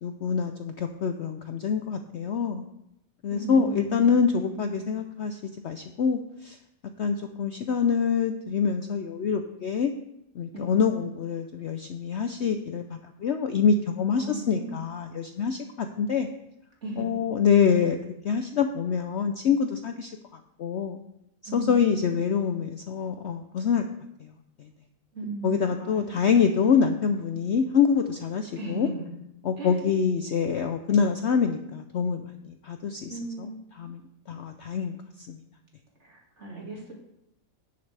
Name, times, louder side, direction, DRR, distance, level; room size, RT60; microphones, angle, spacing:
voice 1, 0.0-2.6 3.2-6.6 7.0-9.9 10.4-16.3 17.0-18.0 18.2-20.1 20.6-21.0 21.5-23.8 24.2-24.3 24.6-24.7 25.4-28.9 29.4-33.5 33.8-34.0 34.3-35.4, left 6 dB, 60° left, 7 dB, 0.7 m, -25 dB
voice 2, 3.3-4.8 10.5-11.0 14.1-14.8 16.8-17.2 21.5-22.1 25.1-26.9 28.6-29.1 29.6-29.8 33.1-33.6 36.0-36.9, right 3 dB, 45° right, -1 dB, 2.5 m, -36 dB
17.0 x 6.8 x 3.3 m, 0.84 s
omnidirectional pair, 1.7 m